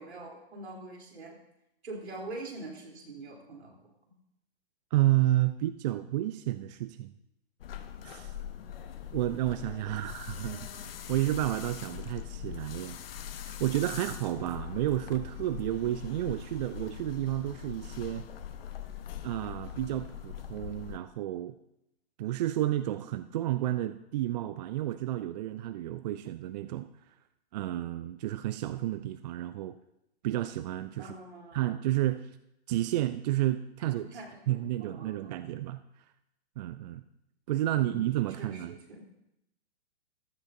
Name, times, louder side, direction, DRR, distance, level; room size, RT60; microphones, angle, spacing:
voice 1, 0.0-1.4 1.8-3.7 31.0-31.9 33.8-35.4 37.8-39.0, right 2 dB, 80° right, 0 dB, 3.4 m, -44 dB
voice 2, 4.9-7.1 8.0-8.3 9.1-13.0 13.4-18.3 19.2-21.6 22.2-26.9 27.5-29.7 30.2-31.1 31.5-32.3 32.7-34.1 34.5-35.8 36.6-37.0 37.5-38.7, right 14 dB, 40° right, 12 dB, 0.5 m, -31 dB
sound 1, 7.6-21.0, left 10 dB, 60° left, 1.1 m, -42 dB
14.5 x 13.0 x 2.6 m, 0.85 s
hypercardioid pair, 120°, 33 cm